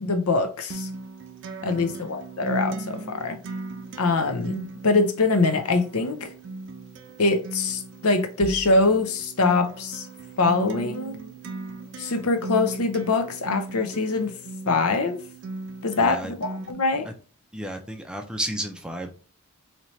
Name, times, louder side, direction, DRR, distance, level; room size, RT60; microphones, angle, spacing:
voice 1, 0.0-0.9 1.6-3.4 4.0-6.3 7.2-10.1 10.4-11.2 12.0-14.3 14.6-15.2 15.8-17.1, left 3 dB, 85° left, 0.7 m, -23 dB
Acoustic guitar, 0.7-16.7, right 2 dB, 55° right, 0.5 m, -37 dB
voice 2, 1.7-2.0 16.0-16.3 17.5-19.1, right 1 dB, 5° right, 0.5 m, -32 dB
sound 1, 8.4-9.4, left 2 dB, 55° left, 1.2 m, -39 dB
4.2 x 2.9 x 3.1 m
head